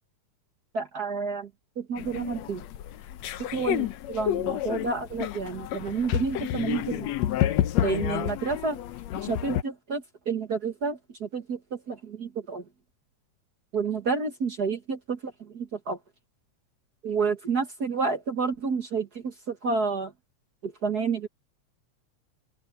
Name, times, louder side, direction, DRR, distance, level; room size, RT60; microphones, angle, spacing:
voice 1, 0.7-1.5 1.8-2.6 3.4-7.1 7.8-8.8 9.2-12.6 13.7-16.0 17.0-20.1 20.6-21.3, right 5 dB, 45° right, 1.4 m, -30 dB
sound 1, 2.0-9.6, left 12 dB, 70° left, 1.9 m, -29 dB
open air
omnidirectional pair, 3.6 m